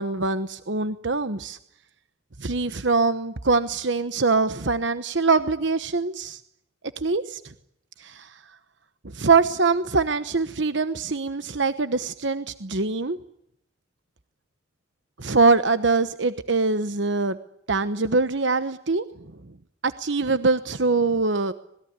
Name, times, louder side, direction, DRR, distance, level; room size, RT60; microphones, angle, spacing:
voice 1, 0.0-1.6 2.4-6.4 7.0-7.4 8.0-8.3 9.1-13.2 15.2-17.4 17.7-19.0 19.8-21.5, right 4 dB, 65° right, 11 dB, 1.1 m, -23 dB
26.5 x 20.5 x 9.7 m, 0.75 s
head